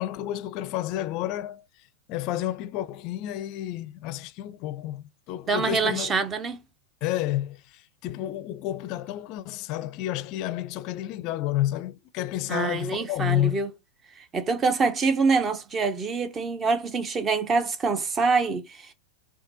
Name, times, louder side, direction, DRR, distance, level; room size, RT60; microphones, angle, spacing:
voice 1, 0.0-6.2 7.0-13.6, left 14 dB, 50° left, 0.4 m, -30 dB
voice 2, 5.5-6.6 12.5-13.7 14.3-18.9, right 4 dB, 25° right, 0.9 m, -25 dB
5.6 x 2.3 x 2.9 m
hypercardioid pair, 95°, 0 cm